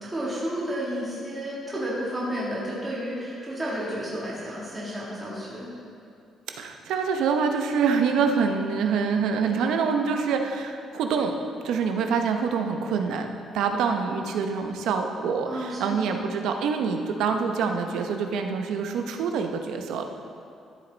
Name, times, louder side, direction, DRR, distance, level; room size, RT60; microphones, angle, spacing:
voice 1, 0.0-5.7 15.5-16.2, equal, 15° right, -7 dB, 1.9 m, -31 dB
voice 2, 6.5-11.3 11.6-13.3 13.5-20.0, right 5 dB, 85° right, 5 dB, 0.9 m, -26 dB
13.0 x 7.6 x 4.0 m, 2.5 s
cardioid pair, 180°, 0 cm